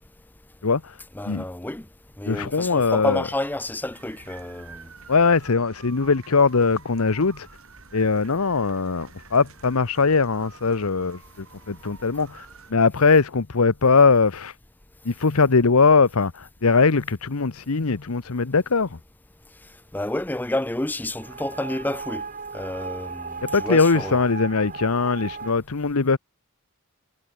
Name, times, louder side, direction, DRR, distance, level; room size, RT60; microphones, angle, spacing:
voice 1, 0.6-1.0 1.3-1.4 2.3-3.3 5.1-7.5 7.9-14.5 15.0-19.0 23.5-26.2, left 4 dB, 75° left, 0.9 m, -21 dB
voice 2, 1.2-1.9 2.2-4.8 19.9-22.2 22.5-24.2, left 1 dB, 10° left, 0.5 m, -29 dB
sound 1, 3.9-12.7, right 4 dB, 70° right, 5.9 m, -48 dB
sound 2, 21.2-25.5, right 5 dB, 40° right, 3.3 m, -36 dB
head